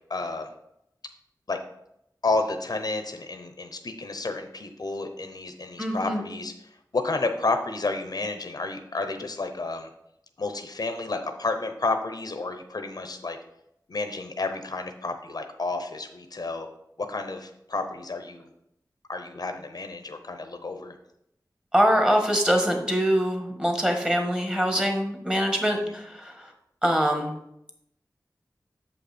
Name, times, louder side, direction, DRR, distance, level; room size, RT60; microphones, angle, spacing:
voice 1, 0.1-0.5 1.5-1.6 2.2-6.5 6.9-9.9 10.4-13.4 13.9-16.7 17.0-18.5 19.1-20.9 25.8-25.9, left 3 dB, 60° left, 7 dB, 0.7 m, -31 dB
voice 2, 5.8-6.2 21.7-26.5 26.8-27.3, equal, 10° right, 3 dB, 1.5 m, -24 dB
7.3 x 5.5 x 4.3 m, 0.80 s
wide cardioid pair, 75°, 7 cm